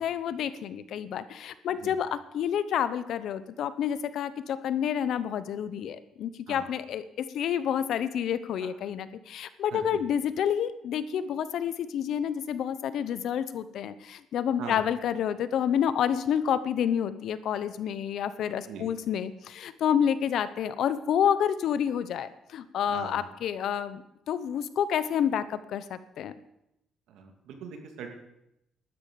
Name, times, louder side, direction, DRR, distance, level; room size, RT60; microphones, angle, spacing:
voice 1, 0.0-26.3, left 9 dB, 60° left, 14 dB, 0.8 m, -29 dB
voice 2, 9.7-10.0 14.6-14.8 18.7-18.9 22.9-23.2 27.1-28.1, right 6 dB, 85° right, 4 dB, 2.5 m, -41 dB
12.5 x 9.5 x 6.9 m, 0.84 s
cardioid pair, 175°, 0 cm